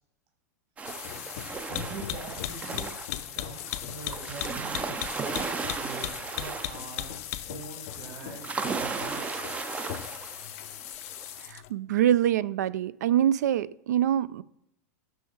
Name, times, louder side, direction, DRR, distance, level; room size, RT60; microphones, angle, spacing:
sound 1, 0.8-11.7, left 14 dB, 60° left, 0.5 m, -38 dB
sound 2, 0.8-11.4, right 5 dB, 15° right, 0.4 m, -36 dB
voice 1, 1.7-2.9 3.3-7.1 7.5-8.5 8.8-9.5, right 5 dB, 40° right, 2 dB, 1.5 m, -43 dB
voice 2, 11.4-14.4, right 11 dB, 85° right, 18 dB, 0.4 m, -25 dB
6.3 x 5.5 x 4.5 m, 0.76 s
supercardioid pair, 135°, 9 cm